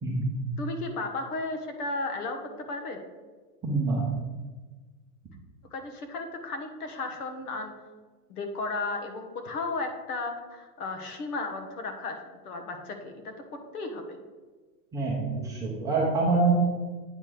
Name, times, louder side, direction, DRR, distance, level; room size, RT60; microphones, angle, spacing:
voice 1, 0.6-2.4 2.7-3.0 5.7-7.7 8.3-14.2, left 3 dB, 70° left, 4 dB, 1.5 m, -34 dB
voice 2, 3.6-4.1 14.9-16.5, right 3 dB, 5° right, -5 dB, 0.6 m, -26 dB
8.8 x 3.4 x 6.0 m, 1.3 s
supercardioid pair, 160°, 47 cm